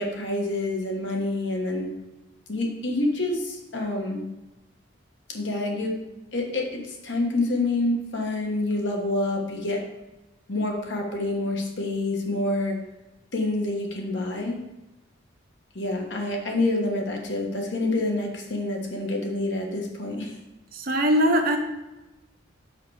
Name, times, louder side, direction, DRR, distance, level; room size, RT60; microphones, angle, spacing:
voice 1, 0.0-1.9 2.5-4.2 5.3-5.9 6.3-9.8 10.5-12.8 13.3-14.6 15.7-20.4, left 2 dB, 65° left, 1 dB, 1.3 m, -27 dB
voice 2, 20.7-21.6, equal, 50° right, 3 dB, 1.0 m, -21 dB
6.0 x 5.7 x 4.7 m, 1.0 s
head